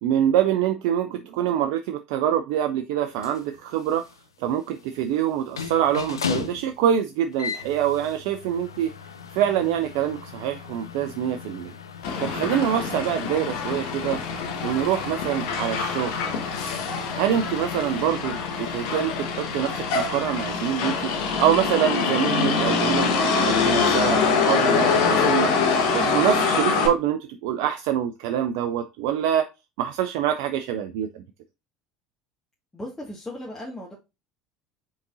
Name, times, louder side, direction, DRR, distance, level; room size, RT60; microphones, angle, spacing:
voice 1, 0.0-4.0 4.4-8.9 9.3-11.7 12.2-14.2 14.6-16.4 17.2-23.3 23.6-25.5 25.9-29.5 29.8-31.2, right 10 dB, 65° right, 7 dB, 0.4 m, -25 dB
sound 1, 3.0-18.0, left 6 dB, 90° left, 0.5 m, -38 dB
Motor vehicle (road), 12.0-26.9, left 5 dB, 65° left, 1.2 m, -24 dB
voice 2, 32.7-33.9, left 1 dB, 15° left, -4 dB, 1.7 m, -37 dB
5.2 x 3.9 x 2.6 m, 0.25 s
hypercardioid pair, 70°, 2 cm